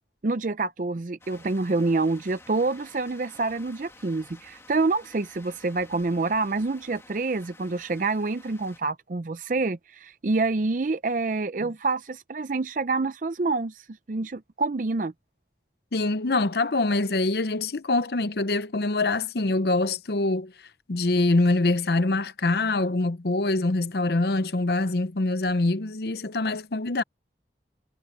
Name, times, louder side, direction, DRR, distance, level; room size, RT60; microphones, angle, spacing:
voice 1, 0.2-15.1, right 3 dB, 45° right, 0.5 m, -27 dB
sound 1, 1.2-8.8, left 2 dB, 15° left, 2.4 m, -52 dB
voice 2, 15.9-20.5 20.9-27.0, left 2 dB, 60° left, 0.7 m, -24 dB
head